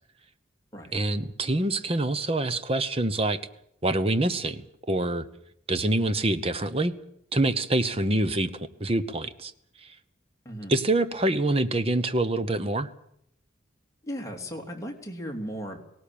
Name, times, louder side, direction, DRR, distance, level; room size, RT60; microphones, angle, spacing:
voice 1, 0.9-3.4 3.8-5.3 5.7-6.9 7.3-9.5 9.8-9.9 10.7-12.9, right 2 dB, 30° right, 11 dB, 1.0 m, -26 dB
voice 2, 14.0-15.8, equal, 15° left, 1 dB, 3.0 m, -36 dB
18.5 x 18.0 x 8.8 m, 0.74 s
head